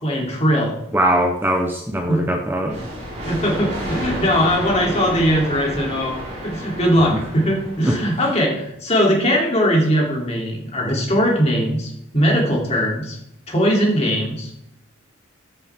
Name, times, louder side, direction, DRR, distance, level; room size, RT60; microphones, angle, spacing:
voice 1, 0.0-0.7 2.1-2.2 3.3-6.1 6.4-13.2 13.5-14.5, equal, 30° left, -1 dB, 3.0 m, -20 dB
voice 2, 0.9-2.8 7.9-8.0, right 1 dB, 10° right, 3 dB, 0.7 m, -20 dB
sound 1, 2.6-8.2, equal, 35° right, 4.8 m, -31 dB
14.5 x 7.4 x 3.6 m, 0.80 s
head